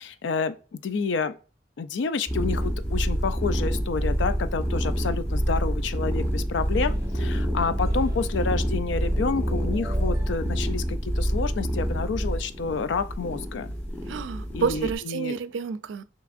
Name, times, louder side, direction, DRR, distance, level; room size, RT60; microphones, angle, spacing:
voice 1, 0.0-1.4 1.8-13.7 14.5-15.3, left 4 dB, 75° left, 0.4 m, -29 dB
sound 1, 2.3-14.9, equal, 10° left, 1.0 m, -27 dB
sound 2, 6.2-8.7 9.0-10.5, right 1 dB, 20° right, 0.8 m, -40 dB
voice 2, 14.1-16.0, right 5 dB, 85° right, 0.4 m, -29 dB
5.9 x 2.9 x 2.5 m
head